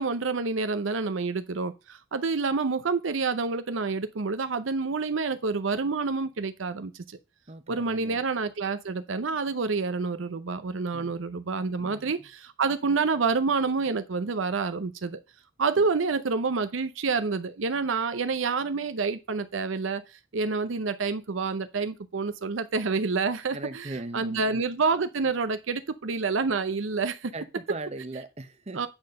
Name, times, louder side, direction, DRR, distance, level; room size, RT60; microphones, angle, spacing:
voice 1, 0.0-7.2 7.7-15.2 15.6-27.3 28.7-28.9, right 4 dB, 75° right, 0.6 m, -28 dB
voice 2, 7.5-8.2 10.9-11.2 11.8-12.3 15.8-15.9 23.5-24.6 27.3-28.9, right 2 dB, 35° right, 0.9 m, -39 dB
8.8 x 4.2 x 6.4 m
head